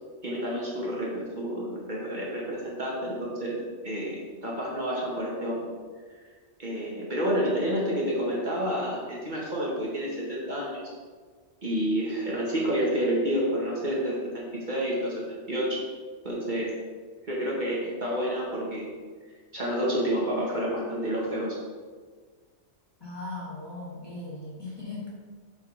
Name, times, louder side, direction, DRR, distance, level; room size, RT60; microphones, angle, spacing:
voice 1, 0.2-3.6 3.8-5.7 6.6-10.9 11.6-15.8 16.2-16.7 17.3-18.9 19.5-21.6, equal, 40° right, -5 dB, 1.4 m, -29 dB
voice 2, 23.0-25.1, left 2 dB, 20° left, -7 dB, 1.8 m, -38 dB
8.0 x 4.1 x 3.8 m, 1.5 s
omnidirectional pair, 1.2 m